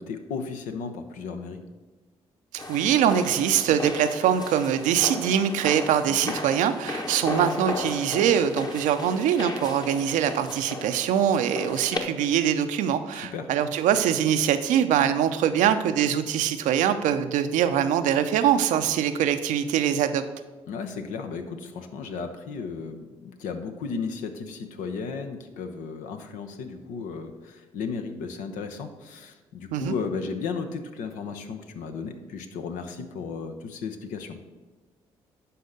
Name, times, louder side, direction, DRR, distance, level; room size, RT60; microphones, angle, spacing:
voice 1, 0.0-1.6 6.1-6.3 13.1-13.5 20.7-34.4, left 5 dB, 70° left, 7 dB, 0.9 m, -35 dB
voice 2, 2.5-20.2 29.7-29.9, right 9 dB, 65° right, 9 dB, 0.6 m, -23 dB
sound 1, 2.6-12.0, left 2 dB, 30° left, 1.3 m, -35 dB
11.5 x 4.3 x 6.6 m, 1.3 s
hypercardioid pair, 45°, 14 cm